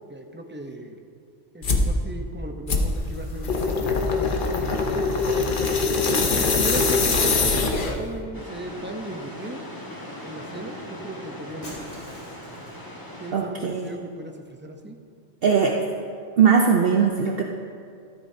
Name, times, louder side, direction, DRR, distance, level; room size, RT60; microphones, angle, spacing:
voice 1, 0.1-1.1 1.5-5.1 6.0-9.6 10.2-11.9 13.2-15.0, right 1 dB, 10° right, 3 dB, 0.6 m, -37 dB
sound 1, 1.6-1.9 2.7-8.1, left 3 dB, 50° left, 1.0 m, -23 dB
sound 2, 8.3-13.3, left 1 dB, 20° left, 1.4 m, -39 dB
Shatter, 11.6-13.0, left 1 dB, 85° left, 3.3 m, -44 dB
voice 2, 13.3-13.9 15.4-15.8 16.4-17.4, right 6 dB, 60° right, 1 dB, 0.8 m, -20 dB
13.5 x 13.0 x 2.8 m, 2.3 s
omnidirectional pair, 1.2 m